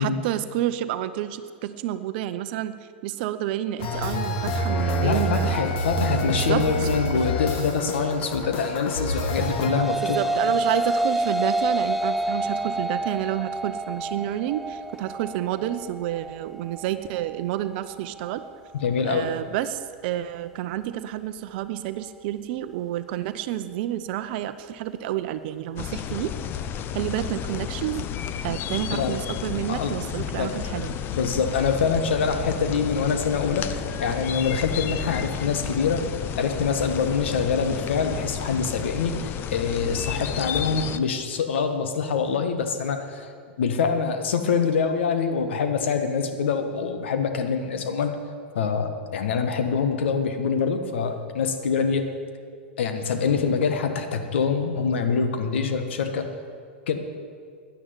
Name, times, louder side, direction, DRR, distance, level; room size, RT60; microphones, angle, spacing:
voice 1, 0.0-5.8 6.2-6.9 10.0-18.4 19.0-26.3 26.9-28.0 28.4-31.0, right 12 dB, 55° right, 12 dB, 0.7 m, -29 dB
sound 1, 3.8-9.7, equal, 55° left, 2.1 m, -27 dB
voice 2, 5.0-10.2 18.7-19.3 28.9-29.2 29.7-29.9 30.4-30.5 31.1-36.0 36.3-43.3 43.6-48.2 48.5-52.1 52.8-56.3 56.9-57.0, left 5 dB, 75° left, 7 dB, 1.6 m, -25 dB
sound 2, 9.3-18.5, right 1 dB, 5° right, 0.7 m, -28 dB
sound 3, 25.8-41.0, left 9 dB, 35° left, 0.7 m, -32 dB
10.5 x 10.0 x 8.9 m, 2.1 s
hypercardioid pair, 105°, 6 cm